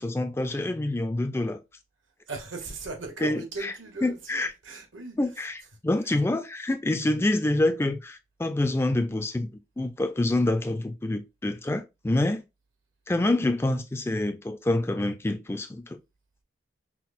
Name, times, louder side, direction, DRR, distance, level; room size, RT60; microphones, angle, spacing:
voice 1, 0.0-1.6 3.2-3.7 4.0-4.5 5.2-9.5 9.8-12.4 13.1-16.0, left 2 dB, 15° left, 0.3 m, -27 dB
voice 2, 2.3-5.8, right 3 dB, 85° right, 1.1 m, -38 dB
5.8 x 2.0 x 2.5 m
head